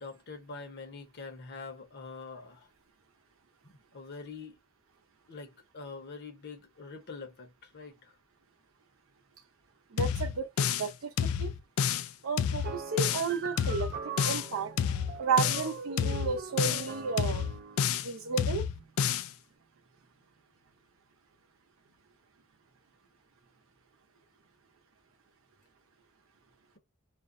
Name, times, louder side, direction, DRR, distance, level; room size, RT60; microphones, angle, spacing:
voice 1, 0.0-2.7 3.6-4.5 5.3-8.1, left 4 dB, 55° left, 0.8 m, -45 dB
voice 2, 9.9-11.1 11.4-11.5 12.2-14.9 15.2-17.5 18.0-18.8, right 5 dB, 85° right, 0.7 m, -33 dB
sound 1, 10.0-10.9 11.2-12.1 12.4-13.3 13.6-14.5 14.8-15.7 16.0-16.9 17.2-18.1 18.4-19.3, left 8 dB, 90° left, 0.3 m, -29 dB
sound 2, 12.6-17.9, right 6 dB, 50° right, 0.4 m, -42 dB
2.5 x 2.0 x 2.5 m
head